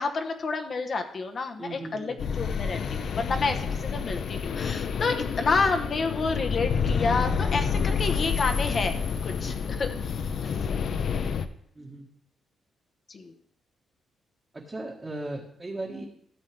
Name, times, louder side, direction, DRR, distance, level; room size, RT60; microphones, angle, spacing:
voice 1, 0.0-9.0 9.2-10.0 13.1-13.3, left 4 dB, 45° left, 5 dB, 1.1 m, -29 dB
voice 2, 1.6-2.2 3.3-3.6 11.7-12.1 14.5-16.1, right 2 dB, 25° right, -3 dB, 1.5 m, -37 dB
sound 1, 2.2-11.5, left 6 dB, 60° left, 0.6 m, -29 dB
13.0 x 7.3 x 3.4 m, 0.67 s
cardioid pair, 95°, 0 cm